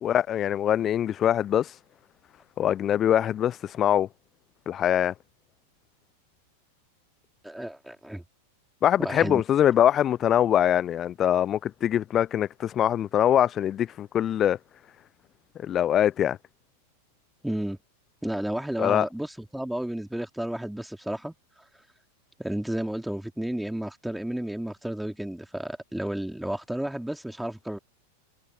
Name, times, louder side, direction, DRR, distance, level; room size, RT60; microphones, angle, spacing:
voice 1, 0.0-1.7 2.6-4.1 4.7-5.1 8.8-14.6 15.6-16.4 18.8-19.1, left 10 dB, 30° left, 0.5 m, -23 dB
voice 2, 7.4-8.2 9.0-9.4 17.4-17.8 18.2-21.4 22.4-27.8, right 1 dB, ahead, 3.5 m, -32 dB
figure-of-eight pair, 90°, 0 cm